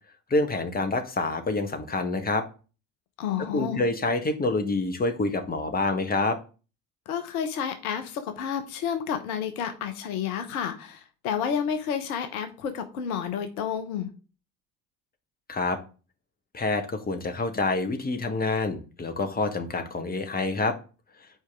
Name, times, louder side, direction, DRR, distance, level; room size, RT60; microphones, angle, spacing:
voice 1, 0.3-2.4 3.5-6.4 15.5-15.8 16.5-20.7, left 3 dB, 20° left, 7 dB, 1.3 m, -27 dB
voice 2, 3.2-3.8 7.1-14.1, left 8 dB, 65° left, 8 dB, 1.0 m, -30 dB
9.2 x 4.7 x 3.6 m, 0.36 s
figure-of-eight pair, 55°, 46 cm